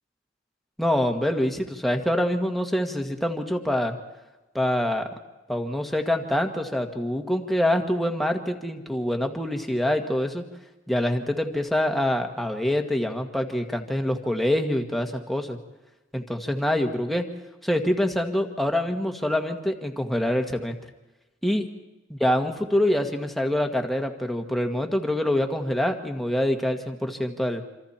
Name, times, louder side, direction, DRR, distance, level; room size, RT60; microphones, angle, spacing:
voice 1, 0.8-4.0 4.5-5.1 5.5-10.4 10.9-15.6 16.1-17.2 17.6-20.8 21.4-21.7 22.1-27.6, left 1 dB, ahead, 3 dB, 1.7 m, -25 dB
27.0 x 26.5 x 4.4 m, 1.1 s
head